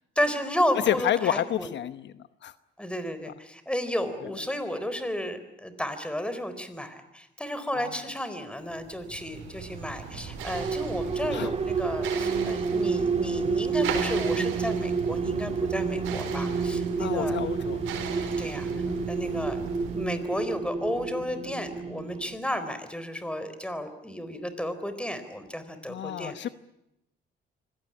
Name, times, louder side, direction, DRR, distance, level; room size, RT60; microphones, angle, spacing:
voice 1, 0.2-1.7 2.8-17.4 18.4-18.7 19.1-19.6 19.9-26.5, equal, 5° left, 11 dB, 4.2 m, -32 dB
voice 2, 0.9-2.0 2.4-2.5 7.8-7.9 11.3-11.5 17.0-17.8 18.7-18.9 25.9-26.5, left 10 dB, 65° left, 13 dB, 0.9 m, -29 dB
sound 1, 8.7-20.2, right 6 dB, 90° right, 4.7 m, -38 dB
sound 2, 10.2-22.4, right 5 dB, 30° right, 2.7 m, -29 dB
25.0 x 17.5 x 9.9 m, 0.87 s
cardioid pair, 90°, 20 cm